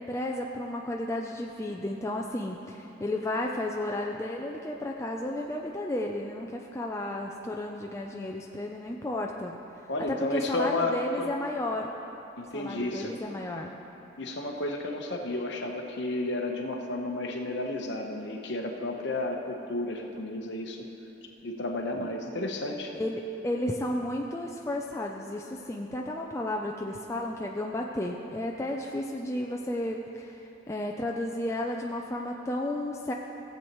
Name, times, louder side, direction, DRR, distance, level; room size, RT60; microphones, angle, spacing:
voice 1, 0.1-9.6 10.1-11.9 12.5-13.7 21.9-22.1 22.9-33.1, left 1 dB, 15° left, 0 dB, 0.4 m, -33 dB
voice 2, 9.9-11.3 12.4-13.1 14.2-20.9 21.4-22.9, left 2 dB, 55° left, 1 dB, 1.0 m, -32 dB
17.0 x 7.9 x 3.0 m, 3.0 s
head